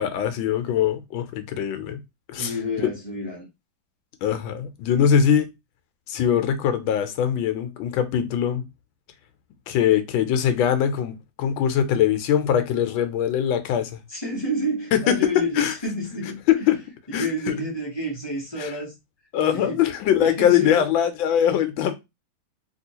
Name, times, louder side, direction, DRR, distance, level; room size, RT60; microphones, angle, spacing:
voice 1, 0.0-2.0 2.3-2.9 4.2-5.5 6.1-8.6 9.7-14.0 14.9-15.1 15.6-15.7 16.5-16.8 17.1-17.6 18.6-18.8 19.3-22.0, left 9 dB, 80° left, 1.3 m, -22 dB
voice 2, 2.4-3.5 14.1-16.4 17.1-18.9 19.5-19.8 20.2-20.9, equal, 20° left, 0.8 m, -29 dB
3.1 x 3.0 x 2.8 m
omnidirectional pair, 2.2 m